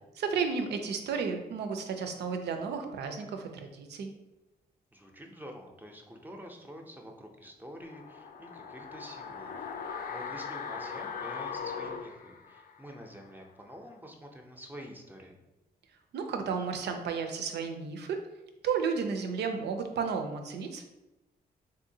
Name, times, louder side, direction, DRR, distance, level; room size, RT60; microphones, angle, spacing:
voice 1, 0.2-4.1 16.1-18.2 18.6-20.8, right 5 dB, 85° right, 5 dB, 0.5 m, -33 dB
voice 2, 4.9-15.4, equal, 10° right, 2 dB, 0.5 m, -47 dB
sound 1, 7.8-13.0 13.3-13.4, left 6 dB, 60° left, 0.4 m, -39 dB
3.7 x 2.7 x 2.7 m, 0.98 s
cardioid pair, 75°, 17 cm